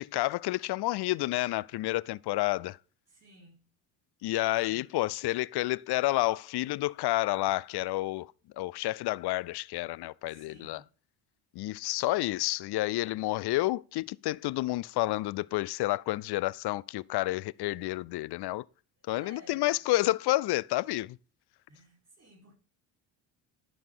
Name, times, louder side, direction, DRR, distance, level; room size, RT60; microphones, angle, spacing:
voice 1, 0.0-2.8 4.2-8.3 8.6-10.8 11.5-18.6 19.1-21.2, left 18 dB, 60° left, 0.5 m, -30 dB
voice 2, 3.1-3.7 4.7-4.8 10.3-10.9 19.0-19.8 21.7-22.5, equal, 30° right, 4.4 m, -55 dB
11.0 x 5.1 x 3.8 m
supercardioid pair, 70°, 46 cm